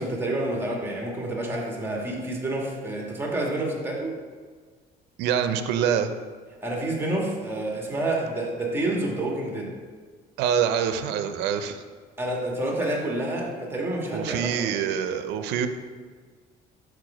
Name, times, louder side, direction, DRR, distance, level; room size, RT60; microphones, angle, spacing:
voice 1, 0.0-4.1 6.6-9.7 12.2-14.7, right 1 dB, 15° right, -1 dB, 1.5 m, -28 dB
voice 2, 5.2-6.1 10.4-11.8 14.1-15.7, right 8 dB, 90° right, 9 dB, 0.5 m, -25 dB
4.7 x 4.6 x 6.0 m, 1.5 s
cardioid pair, 110°, 17 cm